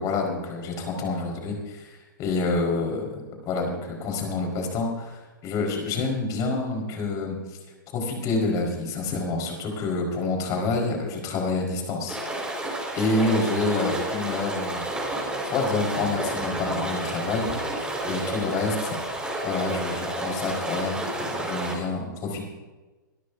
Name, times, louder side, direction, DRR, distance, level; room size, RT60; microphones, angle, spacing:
voice 1, 0.0-7.4 7.9-12.2 12.6-14.8 15.5-19.1 19.4-22.4, left 3 dB, 35° left, 1 dB, 4.7 m, -28 dB
sound 1, 12.1-21.7, right 1 dB, 10° right, 5.1 m, -30 dB
24.5 x 13.0 x 2.7 m, 1.2 s
figure-of-eight pair, 110°, 11 cm